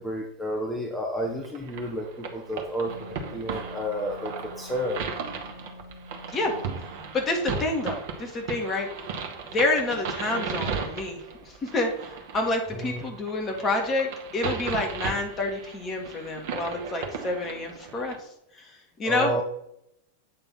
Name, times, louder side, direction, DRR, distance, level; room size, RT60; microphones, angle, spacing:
voice 1, 0.0-5.0 12.7-13.0 19.0-19.4, equal, 5° left, -1 dB, 1.0 m, -31 dB
sound 1, 1.4-18.2, right 5 dB, 50° right, 1.3 m, -36 dB
Wind instrument woodwind instrument, 2.9-7.3, left 2 dB, 65° left, 0.7 m, -46 dB
voice 2, 7.1-8.9 9.4-19.4, left 2 dB, 25° left, 2 dB, 1.8 m, -28 dB
8.5 x 3.4 x 5.9 m, 0.76 s
figure-of-eight pair, 90°, 0 cm